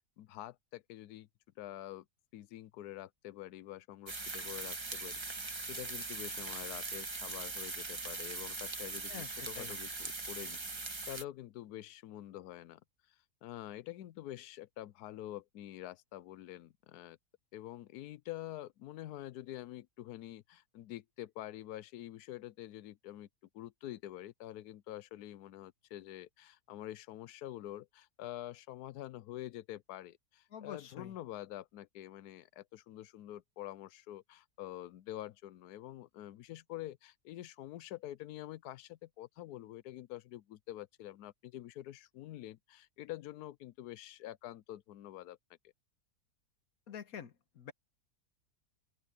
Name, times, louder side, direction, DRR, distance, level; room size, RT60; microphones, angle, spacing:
voice 1, 0.2-1.3 1.6-2.0 2.3-12.8 13.4-17.2 17.5-23.3 23.5-45.4, left 14 dB, 90° left, 1.2 m, -47 dB
sound 1, 4.1-11.2, right 3 dB, 20° right, 1.0 m, -41 dB
voice 2, 9.1-9.7 30.5-31.1 46.9-47.7, left 8 dB, 65° left, 1.7 m, -47 dB
open air
omnidirectional pair, 1.6 m